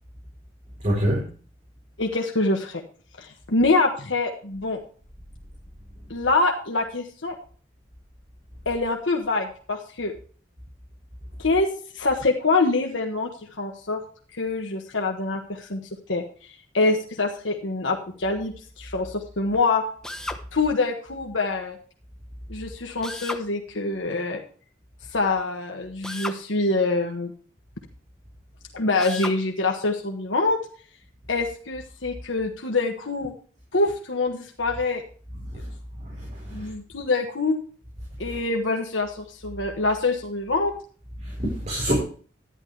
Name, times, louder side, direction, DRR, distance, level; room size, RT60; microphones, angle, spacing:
voice 1, 0.8-1.2 35.3-35.7 36.0-36.7 38.2-38.4 41.2-42.0, equal, 40° right, -4 dB, 4.3 m, -27 dB
voice 2, 2.0-2.8 3.2-4.8 6.1-7.4 8.6-10.1 11.4-11.7 11.9-13.3 13.6-14.0 14.3-15.8 16.1-16.2 16.7-19.8 20.5-21.8 22.5-24.4 25.1-27.3 28.7-30.6 31.3-33.3 33.7-35.0 36.5-37.6 38.2-40.7, left 3 dB, 85° left, 2 dB, 1.4 m, -25 dB
Drill, 20.0-20.4 23.0-23.5 26.0-26.4 29.0-29.4, left 1 dB, 5° left, 1.0 m, -33 dB
11.5 x 10.5 x 3.3 m, 0.42 s
head